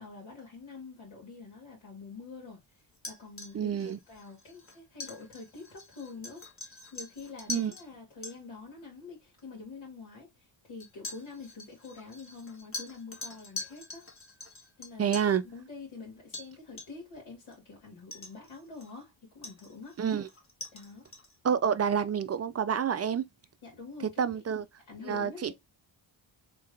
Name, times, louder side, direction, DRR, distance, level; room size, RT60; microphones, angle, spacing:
voice 1, 0.0-2.6 3.1-14.1 14.8-20.0 20.7-21.0 23.6-25.5, left 4 dB, 80° left, 2.2 m, -46 dB
sound 1, 2.9-7.9 8.2-8.3 9.4-9.5 10.8-15.4 16.3-16.5 16.8-17.1 17.5-17.6 18.1-19.0 19.4-21.4, left 3 dB, 30° left, 1.3 m, -44 dB
voice 2, 3.5-4.0 7.5-7.7 15.0-15.4 20.0-20.3 21.4-23.3 24.2-24.6 25.1-25.5, right 7 dB, 35° right, 0.4 m, -28 dB
3.7 x 3.3 x 3.3 m
wide cardioid pair, 110°, 46 cm